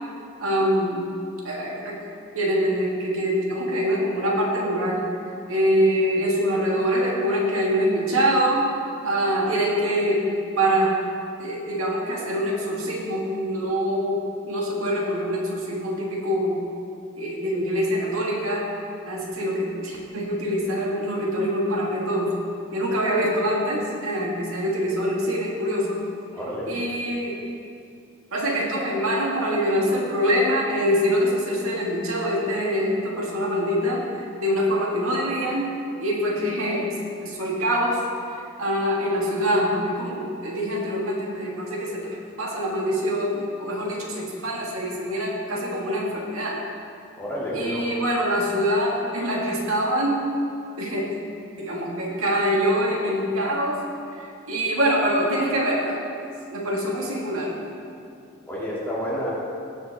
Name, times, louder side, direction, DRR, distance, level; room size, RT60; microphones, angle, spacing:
voice 1, 0.4-1.1 1.4-2.0 2.3-5.1 5.5-8.7 9.0-10.2 10.6-11.0 11.4-14.2 14.5-16.6 17.1-18.7 19.1-22.3 22.7-26.0 26.7-27.4 28.3-35.7 36.0-37.0 37.2-38.0 38.6-46.6 47.5-50.3 50.8-51.1 51.6-53.8 54.1-56.0 56.5-57.6, equal, 85° right, -2 dB, 2.0 m, -24 dB
voice 2, 26.3-26.7 47.2-47.8 58.5-59.3, equal, 10° left, -8 dB, 2.6 m, -29 dB
17.0 x 8.2 x 3.6 m, 2.4 s
head